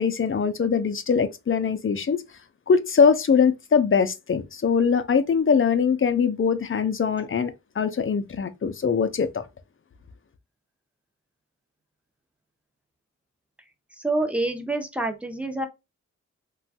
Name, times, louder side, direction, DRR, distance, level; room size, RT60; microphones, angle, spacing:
voice 1, 0.0-2.2 2.7-9.5, left 6 dB, 45° left, 0.5 m, -22 dB
voice 2, 13.9-15.7, right 2 dB, 5° right, 0.8 m, -27 dB
3.1 x 2.2 x 2.7 m
wide cardioid pair, 65°, 30 cm